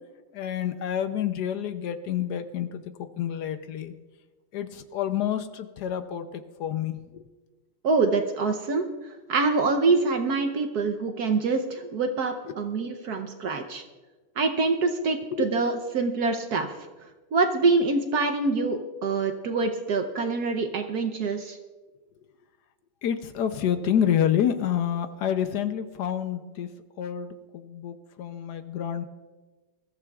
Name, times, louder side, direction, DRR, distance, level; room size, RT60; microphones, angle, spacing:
voice 1, 0.3-2.8 3.2-3.9 4.5-7.2 15.3-15.5 23.0-26.7 27.0-29.0, left 9 dB, 70° left, 9 dB, 0.9 m, -28 dB
voice 2, 7.8-8.9 9.3-13.8 14.4-16.7 17.3-21.6, right 3 dB, 60° right, 6 dB, 1.1 m, -25 dB
21.0 x 14.5 x 2.4 m, 1.3 s
omnidirectional pair, 2.3 m